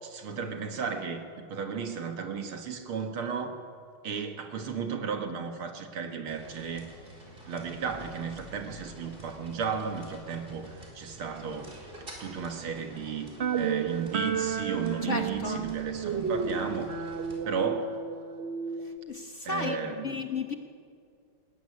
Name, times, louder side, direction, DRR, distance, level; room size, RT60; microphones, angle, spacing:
voice 1, 0.0-3.6 4.0-6.9 7.5-11.9 12.2-16.9 17.4-18.0 19.4-20.2, right 6 dB, 80° right, 5 dB, 2.6 m, -34 dB
sound 1, 6.2-17.4, equal, 25° right, 4.6 m, -48 dB
sound 2, 13.4-19.0, right 7 dB, 50° right, 0.8 m, -32 dB
voice 2, 15.0-15.6 19.1-19.8 20.0-20.5, left 4 dB, 40° left, 5 dB, 1.2 m, -33 dB
20.5 x 18.0 x 9.9 m, 2.3 s
omnidirectional pair, 2.3 m